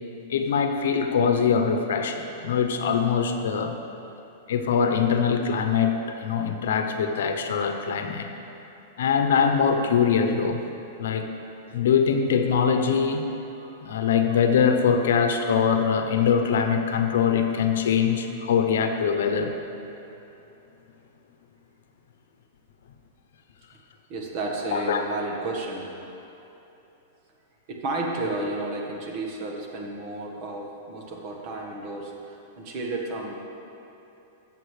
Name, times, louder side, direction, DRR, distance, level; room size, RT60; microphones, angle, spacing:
voice 1, 0.3-3.8 4.5-8.3 9.0-10.6 11.0-11.3 11.7-13.3 13.8-19.5 24.7-25.0, left 6 dB, 80° left, 6 dB, 0.8 m, -23 dB
voice 2, 24.1-25.9 27.7-33.4, right 2 dB, 45° right, 0 dB, 1.4 m, -32 dB
13.0 x 7.3 x 3.3 m, 3.0 s
hypercardioid pair, 145°, 0 cm